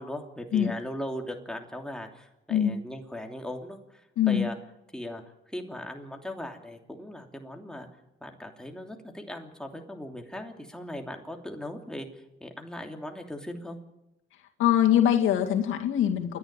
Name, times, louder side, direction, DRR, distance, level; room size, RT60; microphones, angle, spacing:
voice 1, 0.0-4.0 4.3-4.5 4.9-5.2 5.5-7.9 8.2-12.1 12.4-13.8, left 1 dB, 5° left, 2 dB, 3.0 m, -38 dB
voice 2, 4.2-4.5 14.6-16.4, left 10 dB, 85° left, 3 dB, 2.2 m, -23 dB
28.5 x 11.0 x 8.9 m, 0.92 s
cardioid pair, 90°, 20 cm